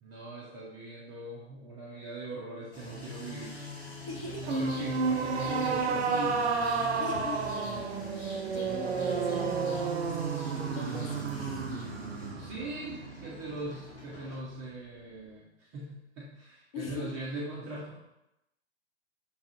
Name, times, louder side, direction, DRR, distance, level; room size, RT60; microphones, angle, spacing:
voice 1, 0.0-4.1 4.5-6.6 12.3-17.9, right 2 dB, 15° right, -6 dB, 0.3 m, -40 dB
sound 1, 2.7-14.4, right 1 dB, 80° left, 1.4 m, -44 dB
voice 2, 4.0-4.5 7.0-7.5 7.8-8.1 8.4-11.9 16.7-17.1, left 4 dB, 55° left, 2 dB, 0.9 m, -42 dB
sound 2, 4.1-11.9, left 1 dB, 30° left, 1.1 m, -49 dB
sound 3, 4.4-13.8, right 5 dB, 75° right, 0.5 m, -31 dB
5.8 x 2.3 x 2.7 m, 0.90 s
figure-of-eight pair, 115°, 34 cm